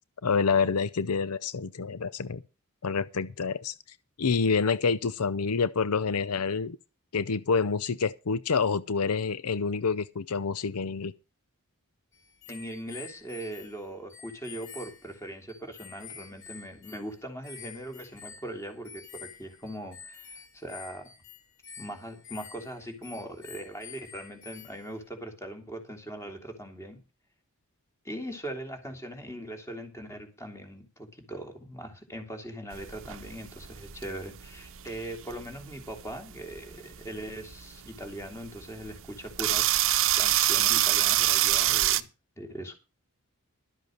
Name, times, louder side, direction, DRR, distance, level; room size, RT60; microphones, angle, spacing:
voice 1, 0.2-2.4 2.8-3.7 4.2-6.8 7.1-11.1, left 5 dB, 80° left, 0.7 m, -27 dB
sound 1, 12.1-25.1, left 7 dB, 55° left, 2.2 m, -49 dB
voice 2, 12.5-21.1 21.8-27.0 28.0-39.9 40.2-42.1 42.4-42.7, right 1 dB, 10° left, 3.4 m, -40 dB
sound 2, 32.7-42.0, right 14 dB, 60° right, 0.9 m, -26 dB
12.5 x 7.9 x 6.6 m
head